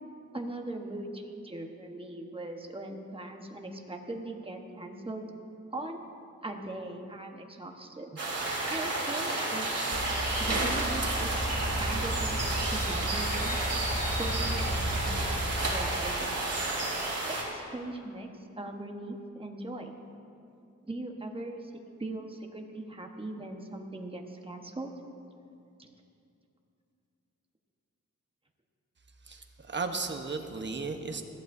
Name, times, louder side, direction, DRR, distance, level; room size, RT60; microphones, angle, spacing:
voice 1, 0.3-5.3 5.7-6.1 6.4-8.1 8.7-9.7 10.4-11.4 11.7-13.6 14.1-16.5 17.3-19.9 20.9-21.7 22.0-24.9 25.8-25.9, right 2 dB, 20° right, 2 dB, 1.2 m, -40 dB
sound 1, 8.2-17.4, right 2 dB, 55° right, 3.3 m, -31 dB
sound 2, 9.9-15.9, equal, 20° left, 1.6 m, -34 dB
voice 2, 29.3-31.2, right 4 dB, 40° right, 5 dB, 1.0 m, -35 dB
20.5 x 14.0 x 2.7 m, 2.6 s
wide cardioid pair, 115°, 29 cm